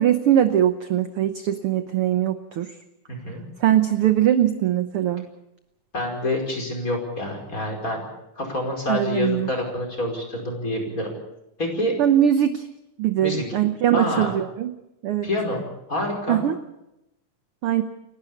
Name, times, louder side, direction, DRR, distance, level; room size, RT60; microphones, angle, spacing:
voice 1, 0.0-2.7 3.6-5.2 8.9-9.5 12.0-12.6 13.0-14.7 15.0-15.3 16.3-16.6 17.6-17.8, right 11 dB, 65° right, 9 dB, 1.4 m, -21 dB
voice 2, 3.1-3.4 5.9-8.0 8.4-11.1 11.6-11.9 13.2-13.6 13.9-14.3 15.2-15.6 15.9-16.4, left 1 dB, 25° left, 1 dB, 5.5 m, -27 dB
29.5 x 12.0 x 8.4 m, 0.89 s
omnidirectional pair, 3.5 m